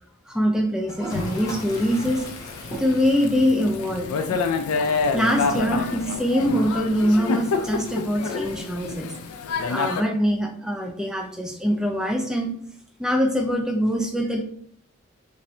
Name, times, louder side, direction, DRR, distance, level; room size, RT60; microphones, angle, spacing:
voice 1, 0.3-2.2 2.7-4.4 5.1-9.1 9.7-12.5 13.0-14.4, equal, 5° right, 3 dB, 0.3 m, -23 dB
Toilet flush, 0.9-8.8, right 1 dB, 15° left, 0.7 m, -42 dB
Thunder / Rain, 1.1-10.0, left 4 dB, 90° left, 0.4 m, -28 dB
3.1 x 2.6 x 2.7 m, 0.62 s
head